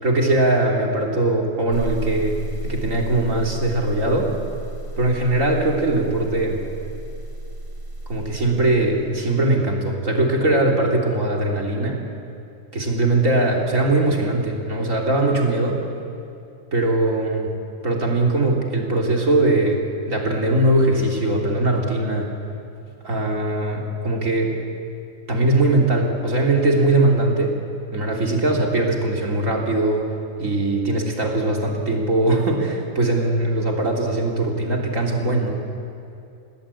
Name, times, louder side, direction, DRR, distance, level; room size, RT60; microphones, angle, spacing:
voice 1, 0.0-4.3 5.0-6.6 8.1-12.0 12.7-15.8 16.7-17.5 17.8-22.3 23.0-24.6 25.3-27.6 27.9-30.1 30.4-35.5, right 2 dB, 85° right, 0 dB, 3.6 m, -20 dB
sound 1, 1.7-9.5, right 1 dB, 45° right, 3.6 m, -33 dB
27.5 x 20.0 x 8.6 m, 2.7 s
omnidirectional pair, 1.3 m